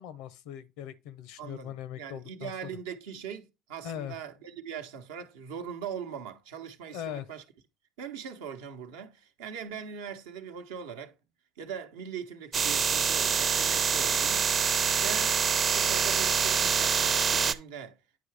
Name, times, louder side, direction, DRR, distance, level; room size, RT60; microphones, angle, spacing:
voice 1, 0.0-2.5 3.8-4.2 6.9-7.3, left 10 dB, 75° left, 0.6 m, -40 dB
voice 2, 1.4-7.4 8.0-11.2 11.6-14.5 14.9-15.4 15.7-18.0, right 7 dB, 80° right, 0.8 m, -41 dB
sound 1, 12.5-17.5, right 6 dB, 45° right, 0.6 m, -25 dB
9.4 x 4.8 x 3.3 m
hypercardioid pair, 65°, 0 cm